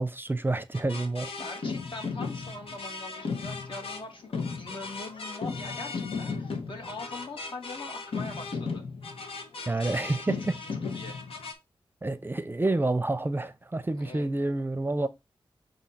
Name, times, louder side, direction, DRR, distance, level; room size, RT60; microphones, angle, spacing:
voice 1, 0.0-1.3 9.7-10.6 12.0-15.1, right 2 dB, 20° right, 0.6 m, -28 dB
sound 1, 0.7-11.5, left 4 dB, 80° left, 1.2 m, -36 dB
voice 2, 1.4-8.8 9.7-10.7 10.9-11.2 14.0-14.3, left 2 dB, 60° left, 2.2 m, -42 dB
6.9 x 2.8 x 5.6 m
wide cardioid pair, 80°, 10 cm